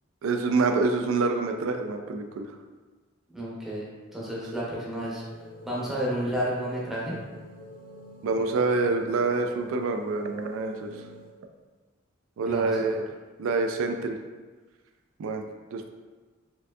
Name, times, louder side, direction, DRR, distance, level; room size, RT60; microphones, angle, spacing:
voice 1, 0.2-2.5 8.2-10.9 12.4-13.0 13.4-14.2 15.2-15.9, right 3 dB, 85° right, 5 dB, 0.3 m, -26 dB
voice 2, 3.3-3.8 4.1-5.2 5.6-7.2 12.4-12.8, equal, ahead, -7 dB, 0.6 m, -31 dB
sound 1, 5.1-11.3, equal, 45° left, 0.6 m, -47 dB
4.3 x 2.6 x 2.3 m, 1.3 s
head